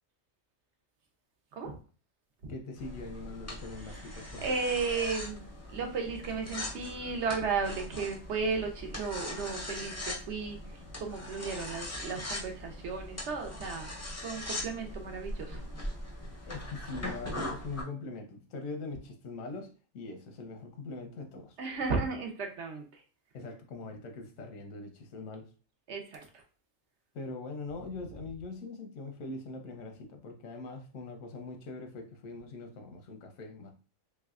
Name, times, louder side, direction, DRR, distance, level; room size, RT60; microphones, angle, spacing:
voice 1, 2.5-4.5 16.5-21.6 23.3-25.5 27.1-33.7, left 3 dB, 90° left, 1.1 m, -42 dB
sound 1, 2.8-17.8, left 1 dB, 20° left, 0.4 m, -41 dB
voice 2, 3.8-5.5 5.7-10.6 11.0-13.9 14.2-15.6 21.6-22.8 25.9-26.2, right 4 dB, 65° right, 1.0 m, -34 dB
3.2 x 3.2 x 2.4 m
omnidirectional pair, 1.3 m